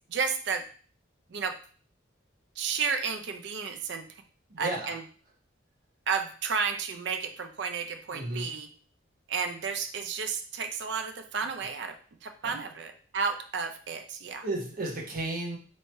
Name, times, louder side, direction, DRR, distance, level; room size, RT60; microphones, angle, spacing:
voice 1, 0.1-0.6 1.3-1.5 2.6-4.0 4.6-5.0 6.1-8.7 9.3-11.9 12.2-14.4, right 5 dB, 60° right, 5 dB, 0.5 m, -32 dB
voice 2, 4.5-5.0 8.1-8.6 12.4-12.6 14.4-15.6, right 2 dB, 45° right, -2 dB, 1.0 m, -33 dB
3.1 x 2.8 x 4.3 m, 0.42 s
head